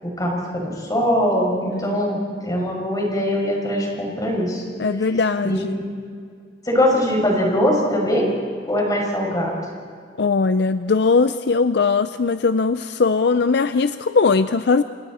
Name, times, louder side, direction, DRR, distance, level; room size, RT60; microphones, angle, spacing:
voice 1, 0.0-4.6 5.4-5.9 6.6-8.3 8.7-9.5, equal, 20° left, -1 dB, 6.1 m, -22 dB
voice 2, 1.7-2.0 4.8-5.8 10.2-14.8, left 4 dB, 65° left, 11 dB, 0.5 m, -19 dB
29.0 x 28.5 x 4.3 m, 2.2 s
head